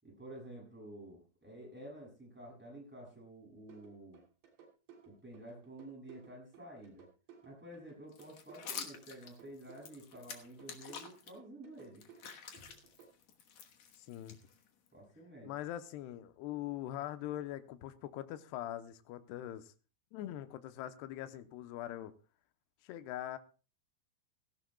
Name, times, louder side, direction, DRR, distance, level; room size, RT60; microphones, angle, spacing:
voice 1, 0.0-4.2 5.1-7.1 7.4-12.0 14.9-15.5, right 1 dB, ahead, 6.8 m, -51 dB
sound 1, 3.7-13.1, right 7 dB, 80° right, 5.1 m, -58 dB
sound 2, 8.1-11.3 11.8-14.9, left 7 dB, 65° left, 1.8 m, -48 dB
voice 2, 14.1-14.4 15.4-19.7 20.1-22.1 22.8-23.4, left 13 dB, 80° left, 2.8 m, -42 dB
17.0 x 16.5 x 2.3 m
omnidirectional pair, 4.8 m